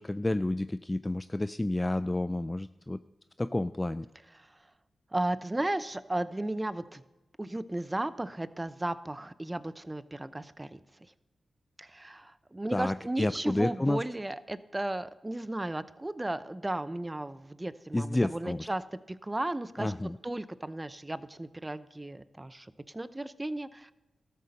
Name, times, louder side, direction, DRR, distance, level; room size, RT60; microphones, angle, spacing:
voice 1, 0.0-3.0 3.4-4.1 12.7-14.0 17.9-18.7 19.8-20.2, left 1 dB, 20° left, 13 dB, 0.3 m, -30 dB
voice 2, 5.1-7.0 7.4-10.8 11.8-18.8 19.1-19.9 20.2-23.9, right 1 dB, 20° right, 15 dB, 0.6 m, -35 dB
13.0 x 6.8 x 6.5 m, 1.1 s
cardioid pair, 50°, 0 cm